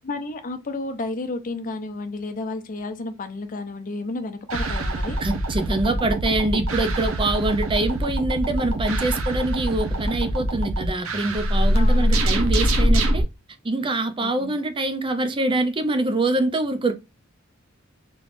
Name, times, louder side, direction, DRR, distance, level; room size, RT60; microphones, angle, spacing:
voice 1, 0.0-5.2 11.7-12.2 14.2-14.6, left 2 dB, 40° left, 0.6 m, -32 dB
sound 1, 4.5-13.2, equal, 85° right, 0.8 m, -23 dB
voice 2, 5.2-13.3 13.6-16.9, right 2 dB, 25° right, 0.5 m, -24 dB
3.2 x 3.1 x 2.5 m
head